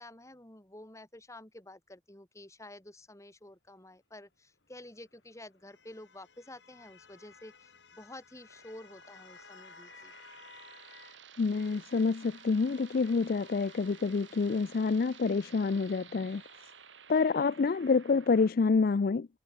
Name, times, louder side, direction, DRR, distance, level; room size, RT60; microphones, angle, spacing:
voice 1, 0.0-10.1, left 1 dB, 15° left, 2.7 m, -50 dB
sound 1, 4.6-11.2 11.6-16.9, left 5 dB, 75° left, 6.3 m, -58 dB
sound 2, 8.5-18.5, right 7 dB, 90° right, 4.8 m, -54 dB
voice 2, 11.4-16.4 17.1-19.3, left 4 dB, 50° left, 0.4 m, -27 dB
head